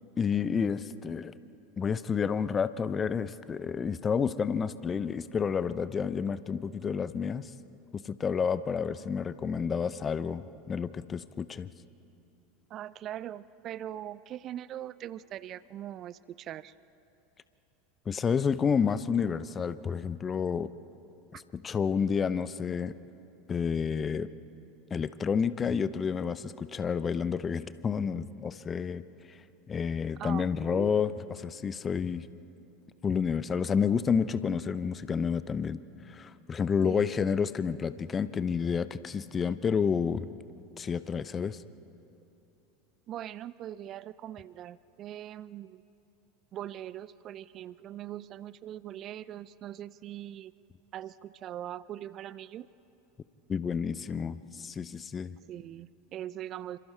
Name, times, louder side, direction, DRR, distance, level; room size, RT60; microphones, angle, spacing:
voice 1, 0.2-1.3 1.8-7.5 7.9-11.7 18.1-20.7 21.3-22.9 23.5-24.3 24.9-29.0 29.7-32.3 33.0-35.8 36.1-40.3 40.8-41.6 53.5-55.4, left 6 dB, 25° left, 15 dB, 0.7 m, -30 dB
voice 2, 12.7-16.7 21.3-21.4 30.2-30.9 36.8-37.1 43.1-45.8 46.5-50.5 50.9-52.7 55.5-56.8, right 12 dB, 40° right, 19 dB, 0.4 m, -41 dB
28.0 x 26.0 x 4.5 m, 2.9 s
figure-of-eight pair, 80°, 0 cm